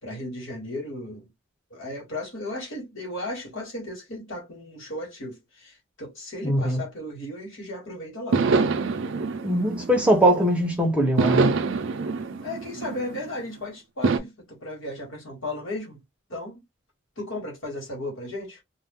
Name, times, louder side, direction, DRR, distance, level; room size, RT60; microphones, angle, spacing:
voice 1, 0.0-1.3 1.7-8.5 12.4-16.0 16.3-16.6 17.2-18.6, left 1 dB, 75° left, 1.5 m, -35 dB
voice 2, 6.4-6.8 9.4-11.5, right 1 dB, 5° right, 0.7 m, -21 dB
sound 1, 8.3-10.6 11.2-13.4 14.0-14.2, right 4 dB, 65° right, 0.4 m, -25 dB
2.5 x 2.2 x 3.6 m
head